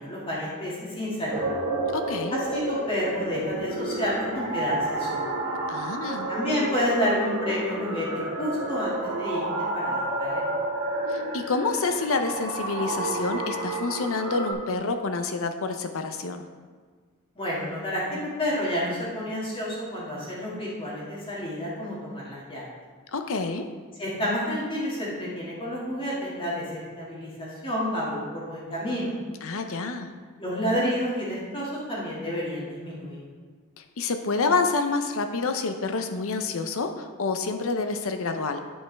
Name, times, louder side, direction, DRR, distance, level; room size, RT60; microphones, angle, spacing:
voice 1, 0.0-1.5 2.3-5.3 6.3-10.6 17.4-18.0 18.4-22.7 24.0-29.1 30.4-33.2, equal, 25° left, -6 dB, 2.4 m, -30 dB
sound 1, 1.3-14.5, right 2 dB, 70° right, 1.3 m, -30 dB
voice 2, 1.9-2.4 5.7-6.3 11.1-16.4 23.1-23.7 29.4-30.1 33.8-38.6, left 4 dB, 70° left, 7 dB, 0.7 m, -28 dB
9.9 x 5.5 x 3.5 m, 1.5 s
head